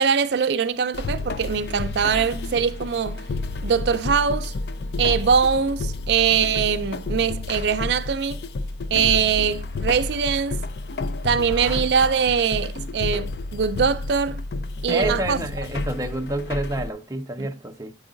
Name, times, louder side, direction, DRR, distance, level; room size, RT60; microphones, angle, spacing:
voice 1, 0.0-3.2 3.6-4.5 5.0-8.4 8.9-10.6 11.2-14.4 14.8-15.5 17.4-17.5, right 6 dB, 70° right, 0.4 m, -22 dB
sound 1, 0.9-16.9, left 2 dB, 65° left, 0.4 m, -30 dB
voice 2, 11.3-11.8 14.9-17.9, right 2 dB, 20° right, 0.5 m, -29 dB
8.6 x 4.8 x 3.8 m
head